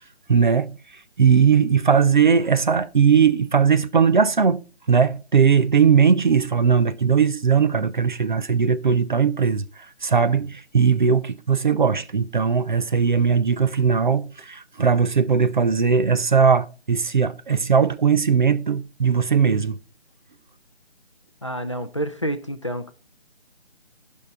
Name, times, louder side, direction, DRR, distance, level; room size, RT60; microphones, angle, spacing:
voice 1, 0.3-0.8 1.2-4.6 4.9-9.6 10.0-19.8, right 6 dB, 45° right, 0.6 m, -19 dB
voice 2, 21.4-22.9, right 1 dB, 30° left, 0.5 m, -28 dB
15.5 x 5.4 x 3.5 m
figure-of-eight pair, 165°, 32 cm